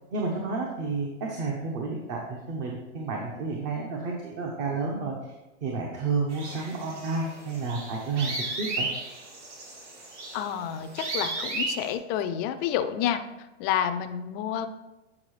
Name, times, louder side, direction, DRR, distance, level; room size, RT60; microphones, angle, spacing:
voice 1, 0.1-5.2 5.6-8.9, right 4 dB, 40° right, 0 dB, 1.1 m, -31 dB
sound 1, 6.3-11.9, right 2 dB, 70° right, 2.2 m, -35 dB
voice 2, 10.3-13.2 13.6-14.7, left 9 dB, 30° left, 9 dB, 0.4 m, -29 dB
8.4 x 4.8 x 3.2 m, 1.0 s
hypercardioid pair, 130°, 37 cm